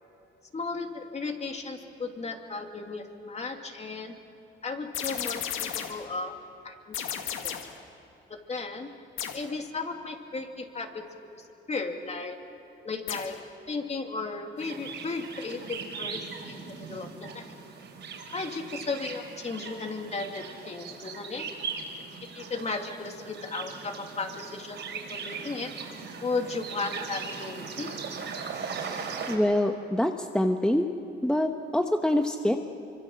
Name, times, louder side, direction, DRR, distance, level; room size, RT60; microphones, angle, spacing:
voice 1, 0.5-4.1 4.6-6.4 6.6-7.6 8.3-8.9 9.3-11.0 11.4-12.4 12.8-13.4 13.7-17.4 18.3-21.5 22.3-25.7 26.2-27.9, left 3 dB, 35° left, 4 dB, 2.7 m, -35 dB
sound 1, 4.9-6.1 6.9-7.8 9.2-9.5 13.1-13.4, left 9 dB, 90° left, 1.8 m, -34 dB
sound 2, 14.6-29.4, right 5 dB, 65° right, 4.8 m, -39 dB
voice 2, 29.3-30.9 31.2-32.6, left 1 dB, 5° left, 5 dB, 1.1 m, -25 dB
25.0 x 24.5 x 7.4 m, 3.0 s
cardioid pair, 90°, 20 cm